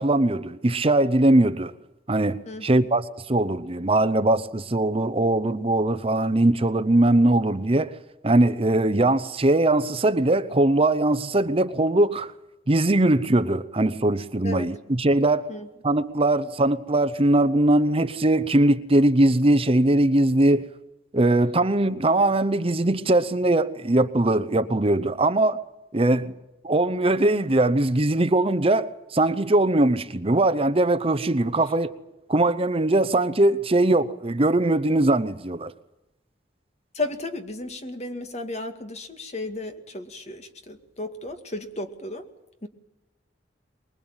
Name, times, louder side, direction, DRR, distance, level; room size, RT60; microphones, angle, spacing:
voice 1, 0.0-1.7 2.1-7.9 8.2-12.3 12.7-15.5 15.8-20.7 21.1-25.6 25.9-26.3 26.6-31.9 32.3-35.7, right 2 dB, 35° right, 0.8 m, -21 dB
voice 2, 2.5-2.8 14.4-14.7 15.5-15.7 36.9-42.2 42.6-42.7, left 2 dB, 40° left, 2.2 m, -34 dB
24.0 x 21.0 x 9.0 m
head